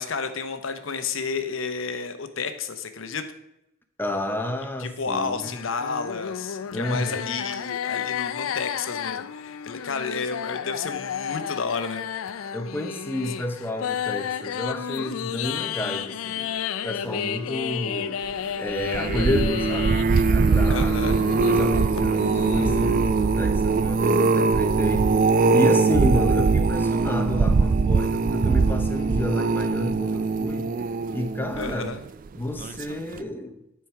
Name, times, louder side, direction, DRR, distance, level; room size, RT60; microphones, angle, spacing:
voice 1, 0.0-3.2 4.8-12.0 20.7-21.2 31.6-32.0, left 5 dB, 70° left, 0.8 m, -31 dB
voice 2, 4.0-5.5 6.7-7.3 12.5-16.5 16.8-18.2 18.6-20.0 20.3-21.0 21.4-25.2 25.5-30.7 31.1-31.9 32.3-33.6, left 1 dB, 10° left, 0.7 m, -30 dB
sound 1, 5.4-23.0, left 8 dB, 85° left, 0.4 m, -32 dB
sound 2, 18.7-32.1 32.6-32.9 33.2-33.3, right 4 dB, 40° right, 0.3 m, -21 dB
10.5 x 4.5 x 4.6 m
head